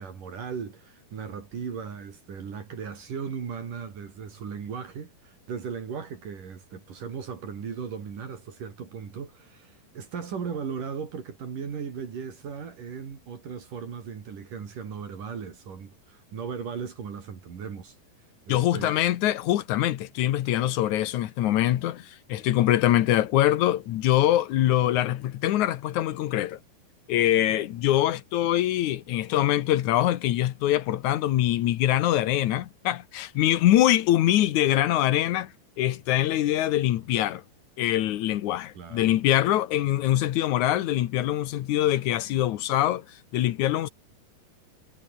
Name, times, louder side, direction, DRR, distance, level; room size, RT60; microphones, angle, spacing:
voice 1, 0.0-18.0 18.5-19.0 38.8-39.1, right 6 dB, 60° right, 4.7 m, -37 dB
voice 2, 18.5-26.6 27.1-35.5 35.8-37.4 37.8-43.0 43.3-43.9, left 13 dB, 65° left, 2.0 m, -23 dB
omnidirectional pair, 4.4 m